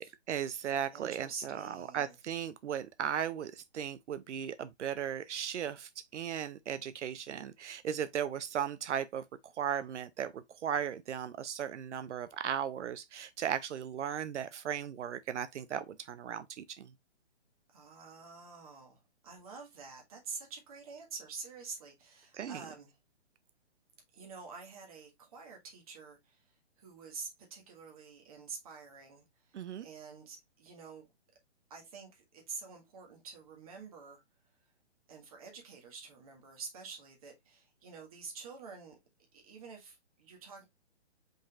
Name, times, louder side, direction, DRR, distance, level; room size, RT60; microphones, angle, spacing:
voice 1, 0.0-9.2 9.6-16.9 22.3-22.6 29.5-29.9, right 9 dB, 85° right, 0.6 m, -36 dB
voice 2, 0.9-2.2 17.7-23.0 24.1-31.1 31.7-34.2 35.1-39.0 39.3-40.6, right 5 dB, 30° right, 1.6 m, -48 dB
5.1 x 3.9 x 2.4 m
hypercardioid pair, 170°, 35 cm